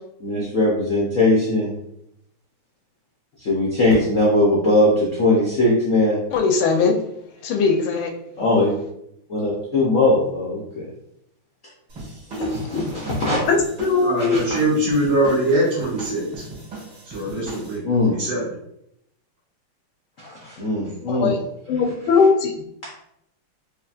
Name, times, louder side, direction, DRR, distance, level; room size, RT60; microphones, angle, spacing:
voice 1, 0.2-1.7 3.4-6.2 8.4-8.7 9.3-10.9 12.5-13.4 14.2-14.4 17.8-18.1 20.2-21.3, left 2 dB, 65° left, -5 dB, 0.8 m, -20 dB
voice 2, 6.3-7.0 7.4-8.1 12.4-12.5 13.5-14.4 21.1-21.4 21.7-22.5, left 4 dB, 80° left, 3 dB, 1.4 m, -19 dB
sound 1, 11.9-17.8, right 2 dB, 55° right, 2.2 m, -38 dB
voice 3, 14.0-16.2 17.1-17.8 18.1-18.4, right 1 dB, 75° right, -5 dB, 2.2 m, -22 dB
4.8 x 2.9 x 2.4 m, 0.76 s
omnidirectional pair, 2.3 m